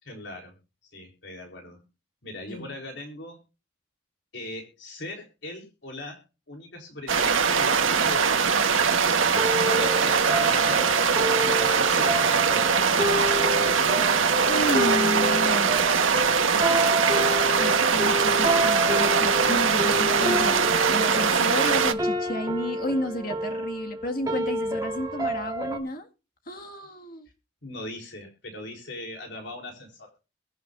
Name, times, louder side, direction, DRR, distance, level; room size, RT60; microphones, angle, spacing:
voice 1, 0.0-0.6 0.8-1.8 2.2-3.4 4.3-9.2 9.6-11.1 11.4-13.7 19.9-20.1 27.6-30.2, left 1 dB, 60° left, 1 dB, 4.1 m, -40 dB
sound 1, 7.1-21.9, right 6 dB, 85° right, 1.4 m, -22 dB
sound 2, 9.4-25.8, equal, 20° right, 2.2 m, -29 dB
voice 2, 14.5-15.7 16.4-16.9 17.6-20.6 20.9-26.1 26.5-27.3, equal, 45° left, 4 dB, 2.0 m, -31 dB
22.5 x 9.4 x 2.6 m, 0.31 s
head